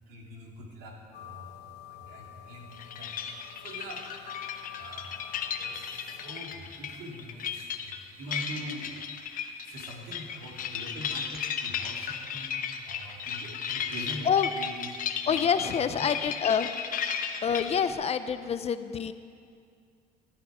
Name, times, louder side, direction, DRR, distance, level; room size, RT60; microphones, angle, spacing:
voice 1, 0.1-1.6 1.9-4.1 4.3-9.0 9.3-14.9 15.2-16.1, right 1 dB, 80° right, -2 dB, 2.8 m, -44 dB
sound 1, 1.1-6.4, left 11 dB, 85° left, 1.0 m, -47 dB
sound 2, 2.7-17.9, left 7 dB, 55° left, 0.9 m, -35 dB
voice 2, 15.3-16.7 17.4-19.1, left 7 dB, 40° left, 12 dB, 0.5 m, -27 dB
12.5 x 12.0 x 4.9 m, 2.3 s
cardioid pair, 110°, 17 cm